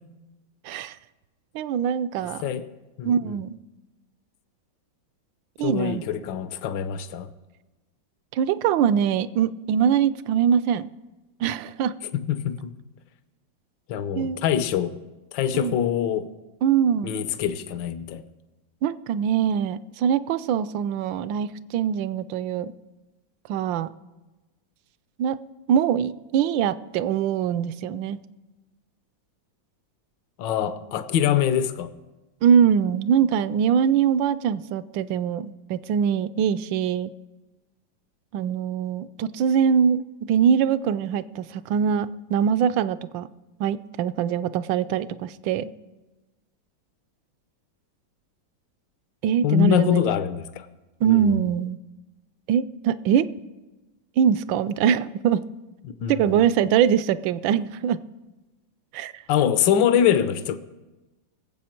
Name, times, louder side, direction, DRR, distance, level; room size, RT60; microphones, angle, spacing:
voice 1, 1.5-2.5 3.0-3.6 5.6-6.0 8.3-10.9 11.4-11.9 14.2-14.4 15.5-15.8 16.6-17.2 18.8-22.7 23.5-23.9 25.2-25.4 25.7-28.2 32.4-37.1 38.3-43.3 43.6-45.7 49.2-50.0 51.0-51.8 52.5-53.3 54.2-55.4 56.1-58.0 58.9-59.2, right 8 dB, 80° right, 1.3 m, -23 dB
voice 2, 2.2-2.7 3.0-3.4 5.6-7.3 12.1-12.7 13.9-15.0 15.3-16.3 17.0-18.2 30.4-31.9 49.4-50.7 51.0-51.5 56.0-56.4 59.3-60.6, left 9 dB, 75° left, 1.4 m, -24 dB
22.0 x 7.7 x 4.4 m
omnidirectional pair, 2.1 m